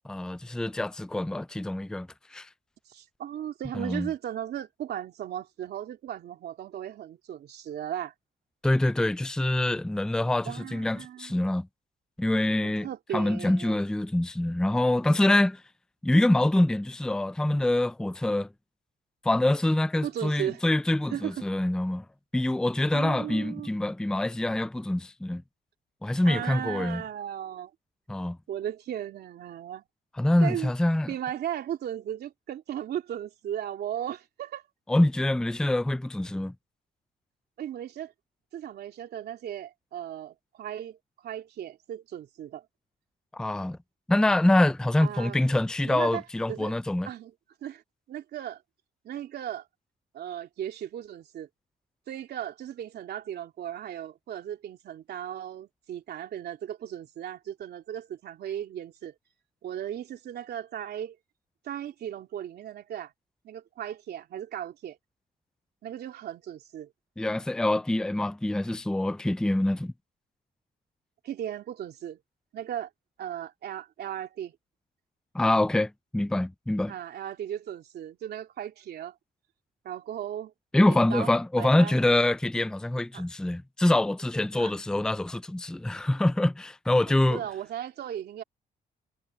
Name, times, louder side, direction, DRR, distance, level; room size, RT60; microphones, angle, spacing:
voice 1, 0.0-2.5 3.7-4.1 8.6-11.7 12.2-12.9 13.1-15.6 16.0-18.5 19.2-22.0 22.3-25.4 26.0-27.0 28.1-28.4 30.2-31.1 34.9-36.5 43.3-43.8 44.1-47.1 67.2-69.9 75.3-76.9 80.7-87.4, left 1 dB, 5° left, 0.4 m, -25 dB
voice 2, 2.9-8.1 10.4-11.5 12.6-13.8 20.0-20.6 21.1-21.5 22.9-23.7 26.2-27.7 28.5-29.8 30.4-30.7 31.1-34.6 37.6-38.1 38.5-42.7 45.0-45.4 45.9-46.2 46.5-46.7 47.0-47.3 47.6-47.8 48.1-48.6 49.0-49.7 50.1-51.5 52.1-59.1 59.6-61.2 61.6-63.1 63.4-65.0 65.8-66.9 71.2-72.2 72.5-72.9 73.2-74.5 76.9-79.1 79.8-80.5 80.8-82.0 83.1-83.3 84.6-84.7 87.1-88.4, right 10 dB, 75° right, 2.9 m, -36 dB
cardioid pair, 85°, 17 cm